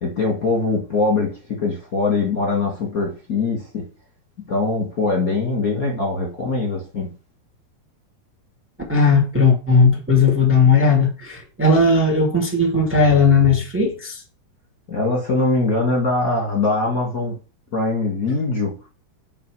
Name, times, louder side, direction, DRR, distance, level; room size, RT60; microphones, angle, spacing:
voice 1, 0.0-3.8 4.5-7.1 14.9-17.4 17.7-18.7, left 3 dB, 35° left, 1.4 m, -22 dB
voice 2, 8.9-14.2, left 4 dB, 10° right, 0.5 m, -16 dB
7.7 x 4.4 x 4.8 m
omnidirectional pair, 4.6 m